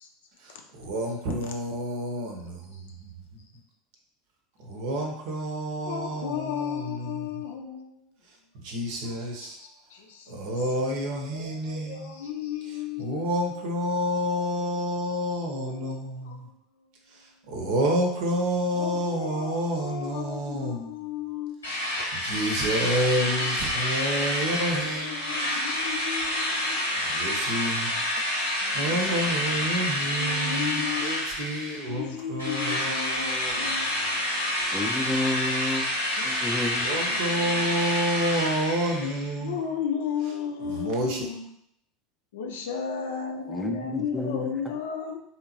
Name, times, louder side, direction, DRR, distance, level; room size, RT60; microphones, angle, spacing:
voice 1, 0.8-2.4 4.7-6.8 8.7-9.5 10.4-12.0 13.0-16.1 17.5-20.8 22.2-25.1 27.2-27.8 28.8-33.5 36.8-39.6 40.7-41.2, equal, 55° right, 1 dB, 0.7 m, -29 dB
voice 2, 5.8-7.9 9.4-10.3 11.3-13.3 14.4-14.5 14.8-15.9 16.2-16.4 18.7-21.6 23.2-23.5 23.7-26.8 28.6-31.1 31.9-34.5 36.2-36.4 36.7-37.7 39.4-41.5 42.3-45.2, left 7 dB, 65° left, 3 dB, 0.5 m, -35 dB
Drill, 21.6-32.0 32.4-39.3, left 1 dB, 80° left, 0.9 m, -28 dB
voice 3, 34.7-35.9 36.2-37.0 43.5-44.7, left 2 dB, 5° left, 3 dB, 0.5 m, -30 dB
3.6 x 2.9 x 2.7 m, 0.74 s
figure-of-eight pair, 75°, 0 cm